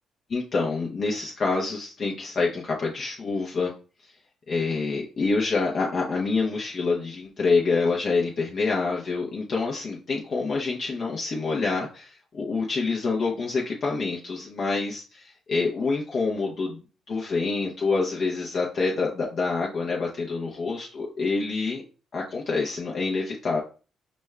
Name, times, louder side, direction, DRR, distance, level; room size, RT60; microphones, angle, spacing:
voice 1, 0.3-3.7 4.5-16.8 17.1-21.8 22.1-23.6, left 4 dB, 50° left, -3 dB, 0.9 m, -27 dB
5.2 x 2.3 x 3.2 m, 0.35 s
cardioid pair, 90°, 0 cm